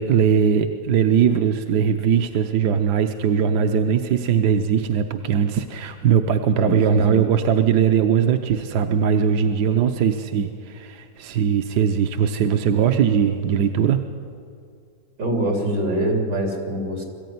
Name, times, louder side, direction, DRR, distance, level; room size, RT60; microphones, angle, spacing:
voice 1, 0.0-14.0, right 7 dB, 75° right, 6 dB, 1.3 m, -20 dB
voice 2, 6.6-7.2 15.2-17.0, right 1 dB, 90° right, 1 dB, 3.9 m, -24 dB
22.0 x 14.5 x 9.4 m, 2.4 s
omnidirectional pair, 1.8 m